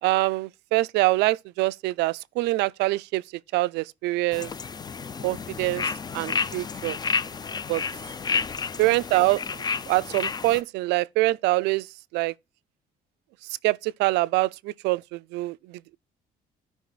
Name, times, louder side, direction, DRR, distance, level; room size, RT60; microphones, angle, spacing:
voice 1, 0.0-3.2 3.5-4.5 5.2-7.0 7.7-7.8 8.8-11.9 12.1-12.3 13.4-16.0, right 19 dB, 90° right, 0.4 m, -25 dB
sound 1, 4.3-10.6, left 5 dB, 25° left, 0.4 m, -31 dB
12.5 x 5.2 x 4.0 m
cardioid pair, 110°, 17 cm